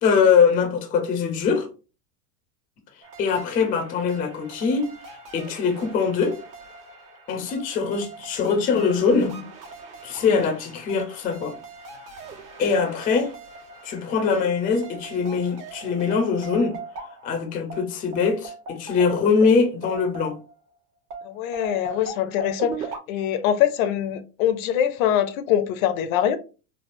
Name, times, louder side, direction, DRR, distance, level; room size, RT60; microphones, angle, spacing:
voice 1, 0.0-1.7 3.2-4.9 5.3-6.4 7.3-9.4 10.0-11.6 12.6-13.3 13.8-16.8 17.2-20.4, left 5 dB, 20° left, 0.4 m, -22 dB
sound 1, 3.0-20.7 21.1-23.0, right 4 dB, 75° right, 1.2 m, -40 dB
voice 2, 21.2-26.4, left 10 dB, 60° left, 0.6 m, -23 dB
3.3 x 2.4 x 2.5 m
hypercardioid pair, 115°, 47 cm